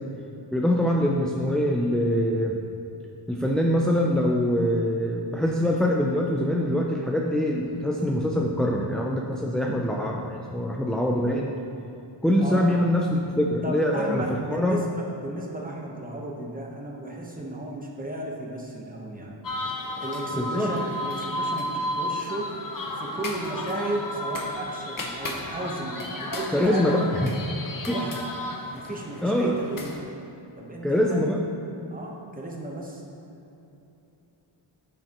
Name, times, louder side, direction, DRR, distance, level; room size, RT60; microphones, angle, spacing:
voice 1, 0.5-2.5 3.3-11.5 12.2-14.8 20.3-20.7 26.5-27.3 27.9-28.0 29.2-29.6 30.8-31.4, left 1 dB, ahead, -1 dB, 0.3 m, -24 dB
voice 2, 13.6-19.4 20.0-22.6 23.0-27.0 27.9-28.3 28.7-30.1 30.6-31.3 31.9-33.0, right 2 dB, 20° right, -1 dB, 1.0 m, -34 dB
sound 1, 19.4-30.0, left 1 dB, 45° left, 0.9 m, -33 dB
9.7 x 6.6 x 3.0 m, 2.9 s
wide cardioid pair, 140°, 46 cm